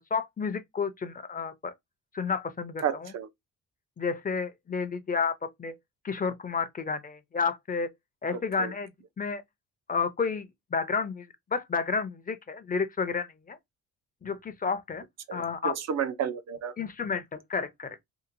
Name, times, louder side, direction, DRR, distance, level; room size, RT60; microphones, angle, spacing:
voice 1, 0.0-1.7 2.1-3.1 4.0-5.7 6.0-7.9 8.2-8.9 9.2-9.4 9.9-10.5 10.7-13.6 14.2-15.0 15.3-15.7 16.8-18.0, left 5 dB, 30° left, 0.6 m, -31 dB
voice 2, 2.8-3.3 8.3-8.7 15.3-16.7, right 8 dB, 60° right, 0.6 m, -32 dB
2.8 x 2.5 x 2.6 m
cardioid pair, 90°, 30 cm